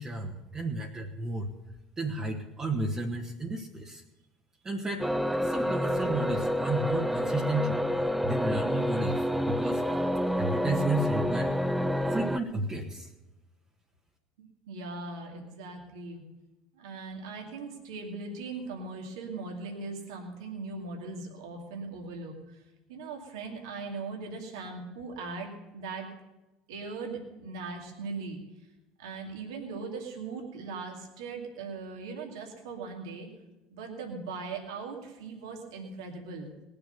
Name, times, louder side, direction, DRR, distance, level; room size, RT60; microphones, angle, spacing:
voice 1, 0.0-1.5 2.0-4.0 4.6-5.1 5.3-9.8 10.4-11.5 12.1-13.1, right 2 dB, 25° right, -1 dB, 1.6 m, -33 dB
sound 1, 5.0-12.4, equal, 5° right, 0.6 m, -28 dB
voice 2, 14.4-16.2 16.7-22.6 22.9-26.1 26.7-28.4 29.0-33.3 33.7-36.5, right 4 dB, 80° right, 1 dB, 2.5 m, -39 dB
18.5 x 7.0 x 6.8 m, 1.0 s
hypercardioid pair, 85°, 3 cm